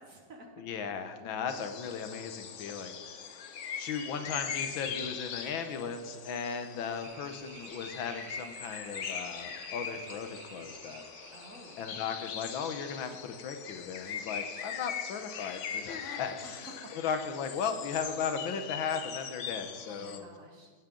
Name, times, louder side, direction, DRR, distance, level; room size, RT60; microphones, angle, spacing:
voice 1, 0.0-0.5 1.1-1.2 11.3-11.8 16.4-16.9 19.9-20.7, right 2 dB, 45° right, 2 dB, 1.8 m, -51 dB
voice 2, 0.6-3.4 3.8-11.0 11.8-20.2, left 6 dB, 90° left, 8 dB, 1.7 m, -36 dB
sound 1, 1.5-20.2, left 7 dB, 60° left, 0.8 m, -41 dB
sound 2, 7.0-13.4, right 5 dB, 85° right, 2.1 m, -52 dB
16.5 x 8.8 x 3.8 m, 1.5 s
omnidirectional pair, 2.1 m